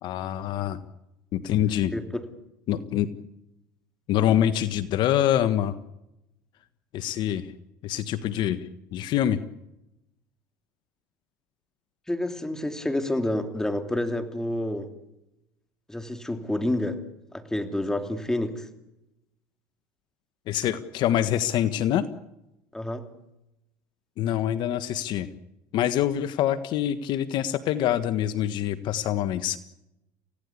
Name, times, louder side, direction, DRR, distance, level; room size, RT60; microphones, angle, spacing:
voice 1, 0.0-0.8 1.3-1.9 2.7-3.1 4.1-5.8 6.9-7.5 7.8-8.6 8.9-9.4 20.5-22.1 24.2-25.3 25.7-29.6, left 11 dB, 55° left, 12 dB, 1.5 m, -25 dB
voice 2, 1.7-2.2 12.1-14.9 15.9-17.0 17.3-18.7 22.7-23.1, left 1 dB, 5° left, 7 dB, 2.9 m, -29 dB
29.5 x 17.0 x 8.5 m, 0.89 s
supercardioid pair, 105°, 9 cm